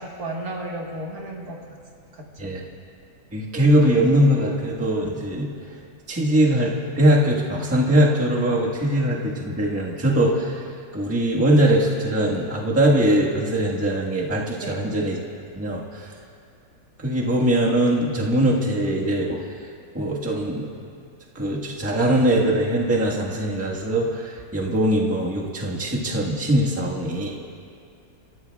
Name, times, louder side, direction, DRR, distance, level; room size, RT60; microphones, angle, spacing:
voice 1, 0.0-1.8 2.1-2.6 14.6-14.9 26.8-26.9, right 1 dB, 60° right, -1 dB, 2.0 m, -34 dB
voice 2, 3.3-5.5 6.1-10.5 10.9-15.2 15.5-15.8 17.0-19.4 19.9-20.7 21.3-27.3, right 1 dB, 10° right, -4 dB, 1.3 m, -21 dB
30.0 x 14.0 x 2.4 m, 2.3 s
omnidirectional pair, 1.9 m